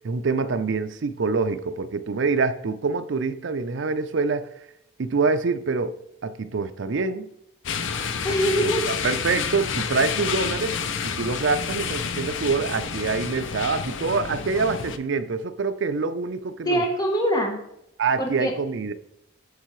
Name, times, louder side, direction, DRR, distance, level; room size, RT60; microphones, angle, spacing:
voice 1, 0.0-4.5 5.0-7.3 8.6-8.7 9.0-10.8 11.0-16.8 18.0-18.9, right 4 dB, 60° right, 0.5 m, -25 dB
sound 1, 7.6-15.0, left 6 dB, 60° left, 0.5 m, -29 dB
voice 2, 8.2-8.9 16.6-17.6 18.2-18.5, right 1 dB, 20° left, 0.9 m, -23 dB
8.2 x 6.6 x 3.1 m
head